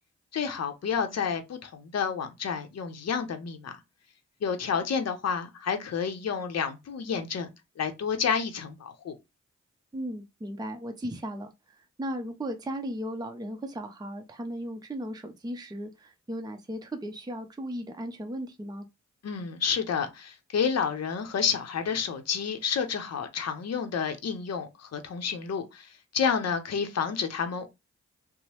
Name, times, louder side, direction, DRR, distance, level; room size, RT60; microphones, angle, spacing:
voice 1, 0.3-3.8 4.4-7.5 7.8-9.2 19.2-27.7, left 6 dB, 60° left, 0.7 m, -30 dB
voice 2, 9.9-18.9, equal, 15° right, 0.6 m, -36 dB
2.9 x 2.0 x 2.8 m
cardioid pair, 45°, 30 cm